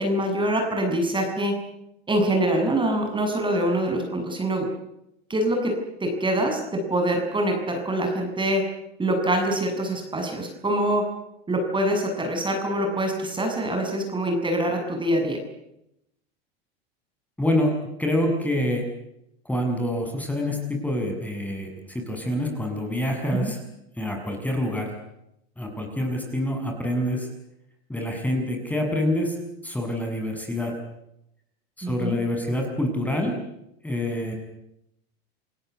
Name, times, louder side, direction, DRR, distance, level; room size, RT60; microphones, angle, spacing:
voice 1, 0.0-1.5 2.1-4.6 5.3-5.7 6.0-8.6 9.0-11.0 11.5-15.4 23.3-23.5 31.8-32.2, right 1 dB, 15° right, 3 dB, 7.1 m, -24 dB
voice 2, 17.4-18.8 19.4-23.6 24.0-24.9 25.6-27.3 27.9-29.4 29.6-30.7 31.8-33.4 33.8-34.4, left 1 dB, 5° left, 2 dB, 7.2 m, -26 dB
29.5 x 17.0 x 8.2 m, 0.81 s
hypercardioid pair, 100°, 30 cm